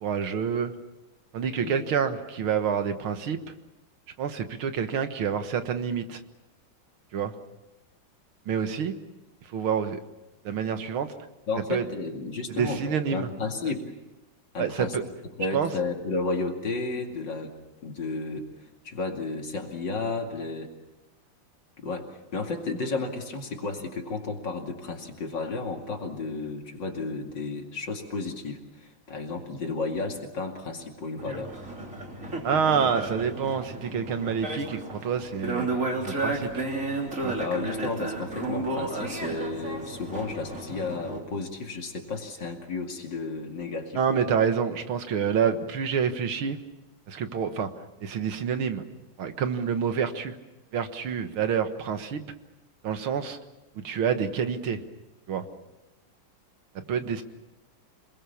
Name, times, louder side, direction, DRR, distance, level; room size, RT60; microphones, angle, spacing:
voice 1, 0.0-0.7 1.3-3.4 4.2-6.2 7.1-7.3 8.5-8.9 9.5-10.0 10.4-11.2 11.7-11.8 12.5-13.3 14.6-15.0 15.5-15.7 32.4-36.6 37.2-37.4 44.0-46.6 47.1-47.7 48.0-48.8 49.2-50.4 50.7-52.3 52.8-53.4 53.8-54.8 55.3-55.5 56.8-57.2, right 7 dB, 85° right, 8 dB, 2.3 m, -27 dB
voice 2, 11.5-13.9 14.5-15.0 15.4-17.5 17.8-18.5 18.8-20.7 21.8-31.5 37.4-44.0, left 3 dB, 60° left, 2 dB, 3.1 m, -32 dB
sound 1, 31.2-41.2, right 2 dB, 35° right, 3.7 m, -33 dB
27.5 x 21.0 x 7.1 m, 1.0 s
omnidirectional pair, 2.2 m